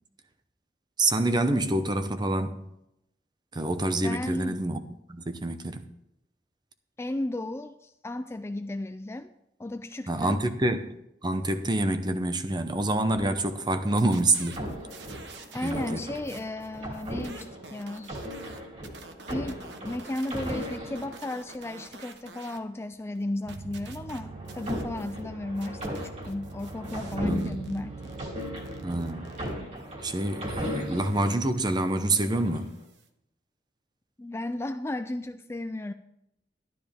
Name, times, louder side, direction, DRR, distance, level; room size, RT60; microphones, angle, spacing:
voice 1, 1.0-2.6 3.5-4.8 5.1-5.8 10.1-10.9 11.2-14.6 15.6-16.0 27.2-27.6 28.8-29.3 30.0-32.8, right 2 dB, 25° right, 0.8 m, -27 dB
voice 2, 4.0-4.6 7.0-9.3 9.6-10.4 15.5-18.2 19.3-28.1 34.2-35.9, left 1 dB, 15° left, 0.3 m, -34 dB
sound 1, 13.0-13.9 14.5-21.8 23.7-31.3 31.9-32.7, equal, 40° right, 2.9 m, -38 dB
sound 2, 13.8-15.9 16.1-22.6 22.9-25.2 25.5-33.1, right 4 dB, 80° right, 1.1 m, -49 dB
sound 3, 23.4-30.5, right 4 dB, 60° right, 0.4 m, -43 dB
12.0 x 12.0 x 3.6 m
head